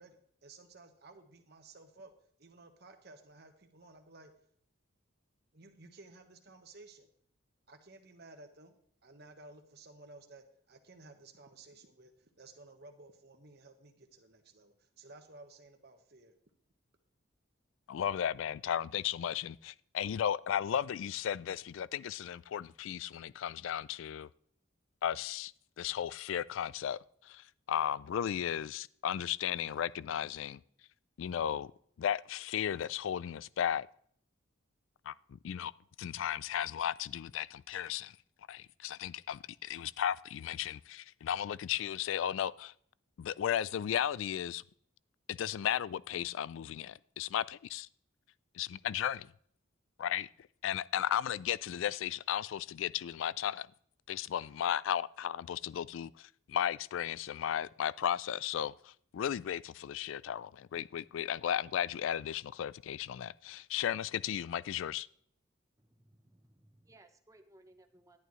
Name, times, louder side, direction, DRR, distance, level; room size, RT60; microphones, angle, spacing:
voice 1, 0.0-2.1 2.4-4.3 5.5-7.1 7.7-16.3, right 2 dB, 50° right, 1.3 m, -55 dB
voice 2, 17.9-24.3 25.0-25.5 25.8-30.6 31.2-31.7 32.0-33.9 35.1-35.2 35.4-35.7 36.0-38.2 38.5-42.7 43.2-44.6 45.3-47.9 48.5-49.3 50.0-50.3 50.6-53.7 54.1-65.1, left 9 dB, 70° left, 0.3 m, -35 dB
voice 3, 65.8-68.2, right 1 dB, 15° right, 0.8 m, -62 dB
11.5 x 11.0 x 3.1 m
head